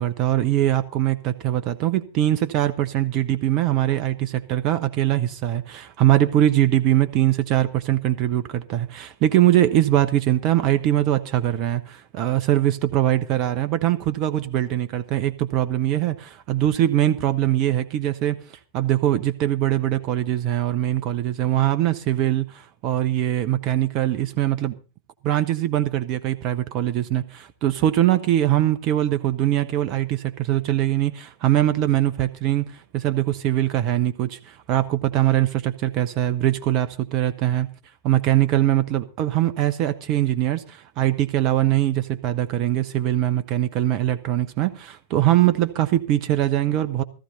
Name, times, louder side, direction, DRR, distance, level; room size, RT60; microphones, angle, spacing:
voice 1, 0.0-18.4 18.7-24.7 25.2-37.7 38.0-47.0, right 13 dB, 40° right, 0.9 m, -22 dB
15.5 x 14.0 x 4.1 m
figure-of-eight pair, 90°, 0 cm